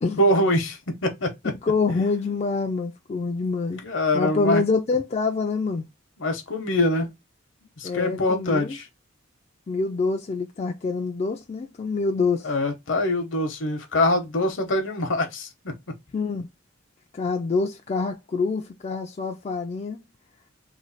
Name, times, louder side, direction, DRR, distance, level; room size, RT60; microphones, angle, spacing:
voice 1, 0.2-1.5 3.8-4.6 6.2-7.1 7.8-8.9 12.4-15.7, left 1 dB, 65° left, 0.9 m, -24 dB
voice 2, 1.6-3.8 4.1-5.9 7.8-8.8 9.7-12.5 16.1-16.5 17.1-20.0, left 4 dB, 35° left, 0.3 m, -26 dB
3.1 x 2.3 x 4.0 m
head